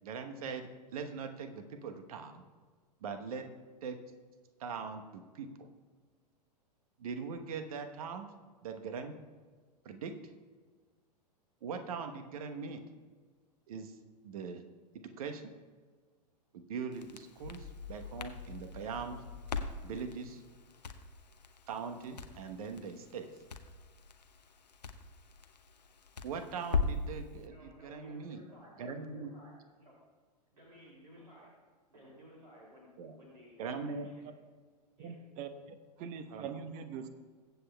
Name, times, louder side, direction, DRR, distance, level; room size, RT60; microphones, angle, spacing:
voice 1, 0.0-2.4 3.0-3.5 3.8-4.0 4.6-5.5 7.0-8.3 8.6-9.1 9.8-10.1 11.6-12.8 13.7-14.0 14.2-14.6 15.0-15.5 16.5-19.2 19.8-20.4 21.7-23.3 26.2-28.4 28.8-29.3 33.0-33.2 33.6-34.1 36.3-36.5, right 5 dB, 60° right, 7 dB, 1.1 m, -41 dB
Crackle, 16.9-27.2, left 4 dB, 80° left, 0.7 m, -40 dB
voice 2, 27.4-29.9 30.5-31.5 31.9-34.3 35.0-35.1, equal, 75° right, -4 dB, 2.6 m, -56 dB
voice 3, 35.0-37.1, right 6 dB, 35° right, 9 dB, 0.9 m, -43 dB
22.0 x 8.1 x 2.3 m, 1.5 s
figure-of-eight pair, 100°, 21 cm